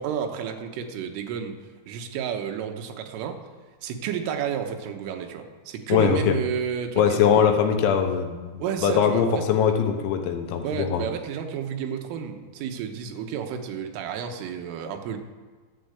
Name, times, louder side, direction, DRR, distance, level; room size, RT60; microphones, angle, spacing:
voice 1, 0.0-1.6 1.9-3.4 3.8-7.5 8.6-9.4 10.6-15.2, right 8 dB, 90° right, 5 dB, 3.6 m, -31 dB
voice 2, 5.9-6.4 7.0-8.5 8.8-11.0, left 7 dB, 75° left, 6 dB, 3.1 m, -21 dB
11.5 x 9.7 x 8.0 m, 1.4 s
omnidirectional pair, 5.6 m